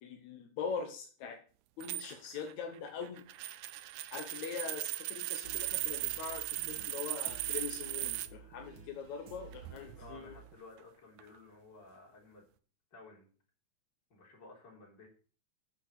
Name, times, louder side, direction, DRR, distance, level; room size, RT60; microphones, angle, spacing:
voice 1, 0.0-1.4 1.8-3.2 4.1-10.3, left 6 dB, 70° left, 3 dB, 2.4 m, -42 dB
sound 1, 1.8-8.3 9.5-10.2 11.2-11.4, right 15 dB, 75° right, 2.0 m, -38 dB
sound 2, 5.4-10.6, right 5 dB, 40° right, 2.1 m, -53 dB
voice 2, 10.0-12.5 12.9-13.3 14.1-15.1, left 3 dB, 35° left, -2 dB, 4.5 m, -55 dB
10.0 x 8.3 x 6.8 m, 0.39 s
omnidirectional pair, 3.5 m